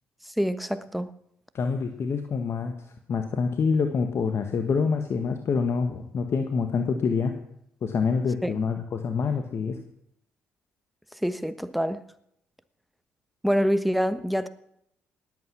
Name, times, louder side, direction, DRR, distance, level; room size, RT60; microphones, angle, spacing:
voice 1, 0.2-1.1 8.4-8.5 11.1-12.0 13.4-14.5, equal, ahead, 1.2 m, -26 dB
voice 2, 1.5-2.7 3.1-7.4 7.8-9.8, left 5 dB, 50° left, 1.4 m, -26 dB
18.5 x 8.5 x 6.1 m
hypercardioid pair, 50°, 6 cm